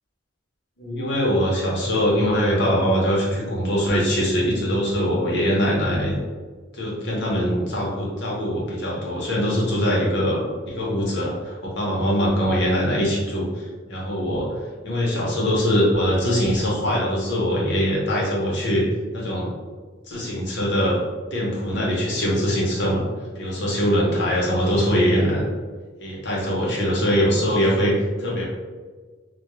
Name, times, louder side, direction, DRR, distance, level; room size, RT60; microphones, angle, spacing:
voice 1, 0.8-6.2 6.7-14.5 14.8-18.9 19.1-19.5 20.1-21.0 21.3-23.0 23.4-25.4 26.0-28.5, equal, 60° left, -4 dB, 0.8 m, -22 dB
2.2 x 2.2 x 3.0 m, 1.4 s
head